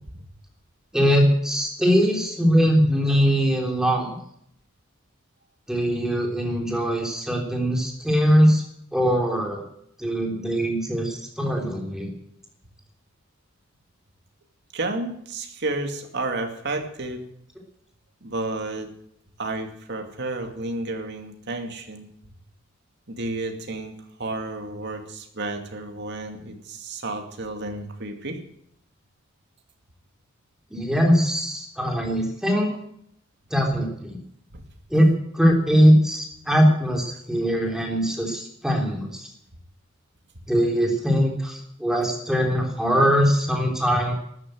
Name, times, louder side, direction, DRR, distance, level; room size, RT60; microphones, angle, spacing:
voice 1, 0.9-4.1 5.7-8.6 8.9-9.6 10.0-12.1 30.7-32.7 33.5-34.2 34.9-39.3 40.5-44.1, equal, 5° right, 0 dB, 3.6 m, -21 dB
voice 2, 14.7-17.2 18.2-18.9 19.4-22.1 23.1-28.4 34.5-34.6, right 2 dB, 60° right, 5 dB, 2.4 m, -31 dB
13.5 x 9.9 x 9.2 m, 0.70 s
head